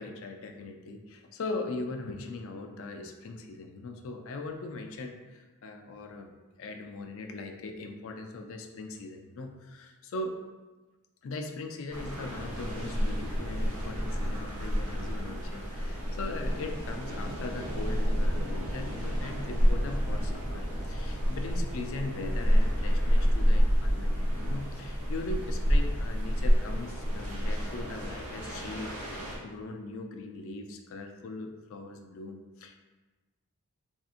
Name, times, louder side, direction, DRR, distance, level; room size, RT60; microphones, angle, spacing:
voice 1, 0.0-6.3 6.6-10.4 11.2-32.8, left 2 dB, 60° left, 4 dB, 0.4 m, -40 dB
sound 1, 11.9-29.4, equal, 85° right, 0.8 m, -29 dB
3.5 x 2.7 x 2.4 m, 1.2 s
head